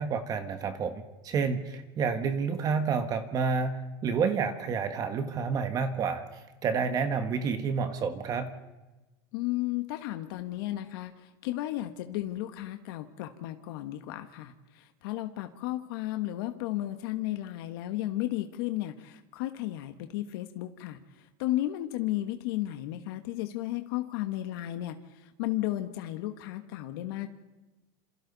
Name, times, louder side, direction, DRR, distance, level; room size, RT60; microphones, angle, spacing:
voice 1, 0.0-8.5, right 5 dB, 30° right, 8 dB, 1.4 m, -29 dB
voice 2, 9.3-27.3, left 15 dB, 70° left, 7 dB, 1.5 m, -34 dB
28.0 x 27.0 x 4.1 m, 1.1 s
supercardioid pair, 150°, 12 cm